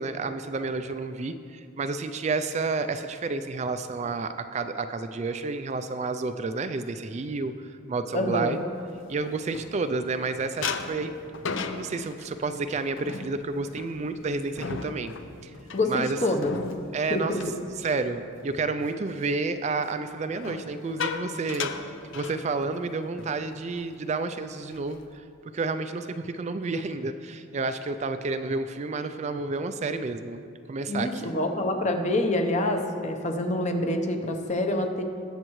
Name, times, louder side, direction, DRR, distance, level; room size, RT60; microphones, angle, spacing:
voice 1, 0.0-8.6 9.1-11.1 11.7-15.1 15.4-15.5 15.9-16.2 16.9-17.4 17.8-21.7 22.1-25.2 25.5-30.4 30.7-31.3, right 3 dB, 35° right, 9 dB, 0.3 m, -30 dB
voice 2, 8.1-8.6 15.7-16.6 17.1-17.4 30.9-35.0, left 1 dB, 35° left, 5 dB, 0.9 m, -26 dB
sound 1, 8.7-10.2 10.6-18.4 18.8-19.1 20.3-22.9 23.2-23.4 23.7-24.0 24.5-25.1, left 5 dB, 70° left, 0.6 m, -37 dB
21.0 x 7.4 x 3.1 m, 2.5 s
head